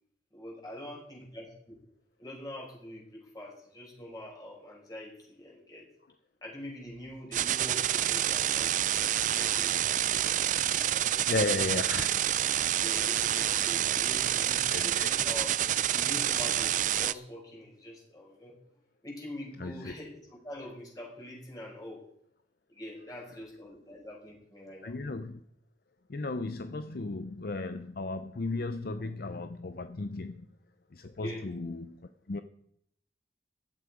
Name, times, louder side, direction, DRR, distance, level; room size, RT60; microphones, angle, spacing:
voice 1, 0.3-1.8 2.2-5.9 6.4-8.8 9.3-11.2 11.6-11.9 12.8-15.6 15.9-18.6 19.0-22.0 22.7-25.0 29.0-29.1 31.2-31.5, left 1 dB, 20° left, -2 dB, 5.2 m, -44 dB
sound 1, 7.3-17.1, right 11 dB, 45° right, 0.4 m, -28 dB
voice 2, 11.3-12.1 14.7-15.1 19.6-19.9 24.8-25.4 26.1-30.4 30.9-32.4, left 3 dB, 55° left, 9 dB, 0.6 m, -35 dB
15.5 x 11.5 x 4.9 m, 0.71 s
head